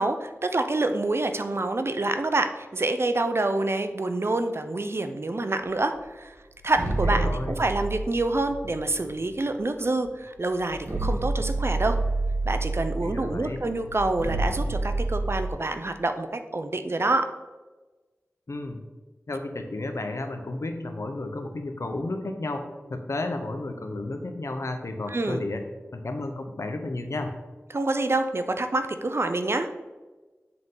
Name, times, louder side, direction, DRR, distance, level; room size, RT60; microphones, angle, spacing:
voice 1, 0.0-6.3 6.6-12.0 12.5-17.3 25.1-25.4 27.7-29.7, right 2 dB, 55° right, 8 dB, 0.5 m, -27 dB
sound 1, 6.6-9.4 10.1-10.2 10.6-15.5, right 2 dB, 85° right, 1.8 m, -29 dB
voice 2, 7.0-7.6 13.0-13.6 18.5-18.8 19.3-25.6 25.9-27.3, left 2 dB, 75° left, 6 dB, 0.8 m, -32 dB
7.6 x 3.7 x 3.9 m, 1.2 s
wide cardioid pair, 45°, 5 cm